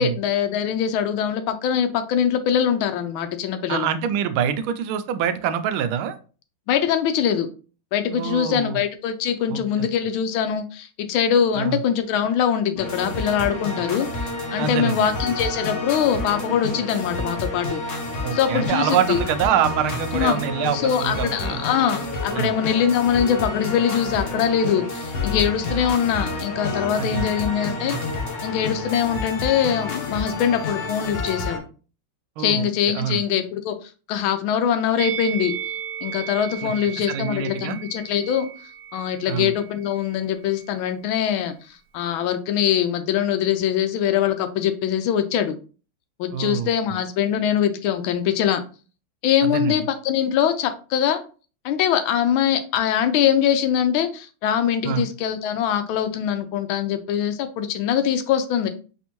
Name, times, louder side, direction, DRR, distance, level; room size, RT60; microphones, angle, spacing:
voice 1, 0.0-3.9 6.7-7.5 7.9-14.1 14.5-17.8 18.3-19.2 20.1-20.4 20.7-28.0 28.4-31.6 32.4-35.5 36.0-38.5 38.9-45.6 46.2-48.6 49.2-51.2 51.6-58.7, left 9 dB, 80° left, 9 dB, 1.4 m, -23 dB
voice 2, 3.7-6.2 8.1-8.8 9.5-9.9 11.5-11.8 14.6-15.1 18.2-21.6 22.3-22.6 27.0-27.3 32.4-33.2 36.6-37.8 39.3-39.6 46.3-47.0 49.4-49.8 54.8-55.1, right 9 dB, 90° right, 10 dB, 1.4 m, -25 dB
sound 1, 12.8-31.6, left 2 dB, 45° left, 1.0 m, -29 dB
Musical instrument, 35.0-40.2 40.5-40.7, right 9 dB, 70° right, 1.1 m, -35 dB
4.2 x 3.5 x 2.9 m, 0.37 s
omnidirectional pair, 2.2 m